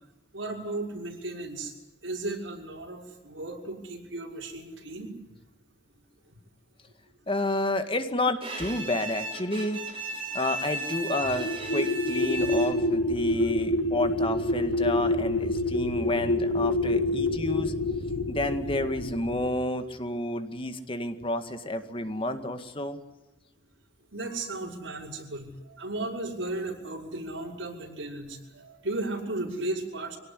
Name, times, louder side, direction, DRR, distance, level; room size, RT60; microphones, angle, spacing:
voice 1, 0.3-1.7 2.0-5.1 24.1-30.2, right 2 dB, 80° right, 1 dB, 6.0 m, -35 dB
voice 2, 7.3-9.8 10.3-17.7 18.3-23.0, left 1 dB, 30° left, 8 dB, 2.0 m, -30 dB
Bowed string instrument, 8.4-13.0, right 2 dB, 30° right, 6.3 m, -35 dB
sound 1, 11.2-19.6, left 1 dB, 70° left, 1.9 m, -27 dB
25.0 x 18.5 x 10.0 m, 1.0 s
head